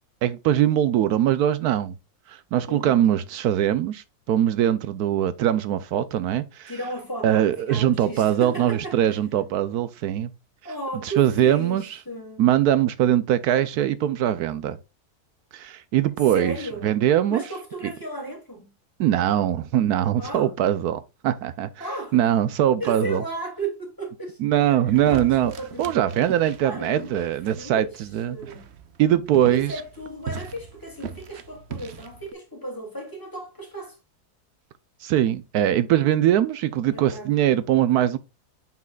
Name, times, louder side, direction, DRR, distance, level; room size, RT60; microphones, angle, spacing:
voice 1, 0.2-1.9 2.3-6.7 7.2-10.3 11.0-12.0 12.4-14.8 15.5-16.6 16.8-17.4 19.0-21.7 22.1-23.2 24.4-25.5 25.8-28.4 29.0-29.7 35.0-38.2, right 11 dB, 80° right, 1.1 m, -22 dB
voice 2, 2.7-3.1 6.7-9.2 10.6-12.4 16.3-16.9 17.3-18.7 20.2-20.5 21.8-22.3 22.8-24.4 24.9-26.3 26.6-27.2 27.5-28.7 29.5-34.0 36.9-37.6, right 2 dB, 15° left, 2.6 m, -35 dB
sound 1, 24.9-32.3, right 7 dB, 55° right, 0.9 m, -40 dB
7.5 x 6.0 x 2.3 m
omnidirectional pair, 1.7 m